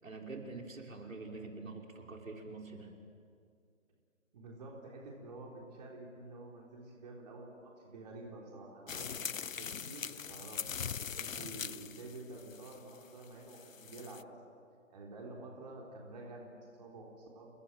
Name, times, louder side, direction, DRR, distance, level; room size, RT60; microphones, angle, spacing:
voice 1, 0.0-2.9, right 3 dB, 75° right, 1 dB, 5.6 m, -45 dB
voice 2, 4.3-9.3 9.6-10.6 11.1-14.4 14.9-17.5, right 2 dB, 30° right, -1 dB, 3.8 m, -49 dB
sound 1, 8.9-14.2, left 7 dB, 70° left, 0.8 m, -41 dB
29.5 x 19.5 x 9.1 m, 2.2 s
figure-of-eight pair, 160°, 40 cm